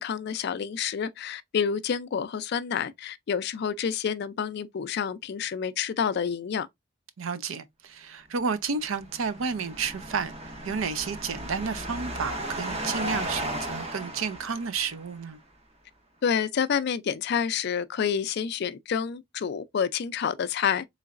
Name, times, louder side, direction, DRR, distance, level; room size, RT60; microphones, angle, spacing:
voice 1, 0.0-6.7 16.2-20.9, left 7 dB, 55° left, 0.4 m, -28 dB
voice 2, 7.2-10.3 10.6-15.4, right 5 dB, 80° right, 0.5 m, -31 dB
sound 1, 8.8-15.2, right 1 dB, 30° right, 0.9 m, -35 dB
3.8 x 3.1 x 2.4 m
head